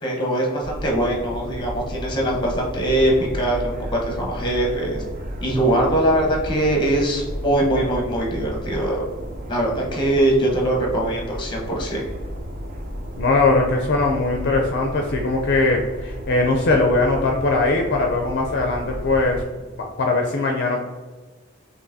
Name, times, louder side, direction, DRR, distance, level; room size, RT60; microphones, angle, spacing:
voice 1, 0.0-5.0 5.4-9.0 9.5-12.0, right 1 dB, 25° left, -1 dB, 0.9 m, -22 dB
sound 1, 0.6-19.4, equal, 45° right, 0.6 m, -33 dB
voice 2, 13.2-19.4 19.8-20.8, left 3 dB, 55° left, 1 dB, 0.4 m, -20 dB
5.5 x 2.9 x 2.6 m, 1.4 s
head